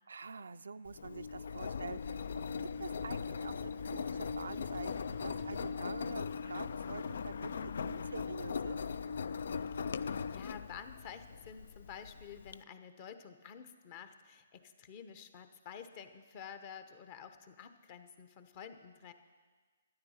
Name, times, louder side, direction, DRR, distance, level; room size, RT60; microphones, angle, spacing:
voice 1, 0.1-8.8, right 4 dB, 75° right, 12 dB, 0.4 m, -47 dB
Engine, 0.9-12.6, left 6 dB, 65° left, 0.3 m, -39 dB
sound 1, 2.0-11.5, left 3 dB, 85° left, 2.8 m, -53 dB
voice 2, 10.0-19.1, left 7 dB, 40° left, 9 dB, 1.0 m, -50 dB
12.5 x 10.5 x 5.7 m, 1.5 s
figure-of-eight pair, 135°, 0 cm